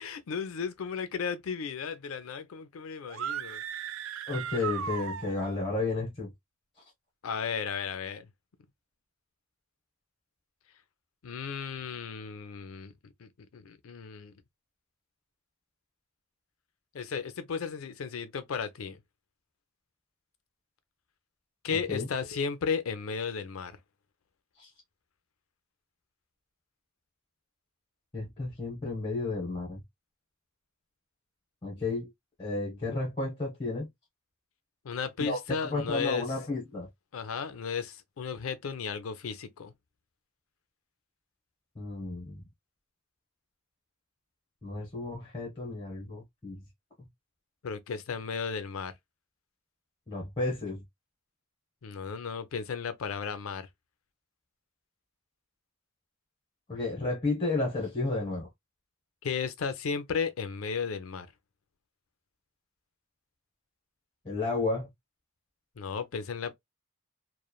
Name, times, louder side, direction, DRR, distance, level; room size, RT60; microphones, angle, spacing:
voice 1, 0.0-3.6 7.2-8.3 11.2-14.3 16.9-19.0 21.6-23.7 34.8-36.3 37.1-39.7 47.6-48.9 51.8-53.7 59.2-61.3 65.8-66.5, left 6 dB, 80° left, 0.5 m, -34 dB
sound 1, 3.1-5.7, right 8 dB, 65° right, 0.3 m, -36 dB
voice 2, 4.3-6.3 21.7-22.1 24.6-24.7 28.1-29.8 31.6-32.1 32.4-33.9 35.2-36.9 41.7-42.4 44.6-46.6 50.1-50.8 56.7-58.5 64.2-64.9, left 3 dB, 25° left, 1.0 m, -32 dB
3.1 x 2.1 x 2.2 m
head